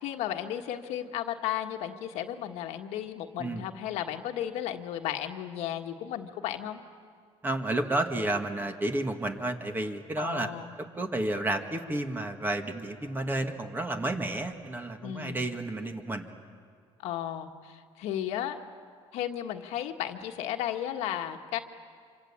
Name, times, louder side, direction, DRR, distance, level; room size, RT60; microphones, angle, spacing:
voice 1, 0.0-6.8 10.2-10.7 15.0-15.5 17.0-18.6 19.1-21.6, left 11 dB, 85° left, 5 dB, 1.6 m, -34 dB
voice 2, 7.4-10.5 11.0-16.3, right 1 dB, 20° right, 5 dB, 2.1 m, -31 dB
26.5 x 25.5 x 8.6 m, 2.1 s
cardioid pair, 120°, 11 cm